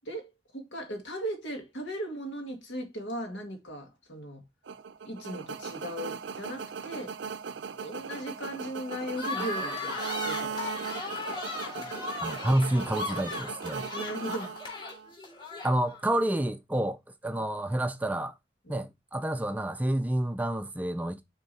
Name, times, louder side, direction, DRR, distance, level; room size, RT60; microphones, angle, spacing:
voice 1, 0.0-4.4 5.0-7.2 7.8-10.8 11.7-12.1 13.9-14.5 17.3-17.4 18.7-18.9, right 1 dB, 80° left, 2.1 m, -38 dB
sound 1, 4.7-15.1, right 6 dB, 75° right, 0.5 m, -38 dB
sound 2, 9.1-16.1, left 3 dB, 25° left, 3.1 m, -37 dB
voice 2, 12.2-13.9 15.6-18.3 18.7-21.2, right 1 dB, 10° right, 0.3 m, -29 dB
6.6 x 3.6 x 4.1 m
head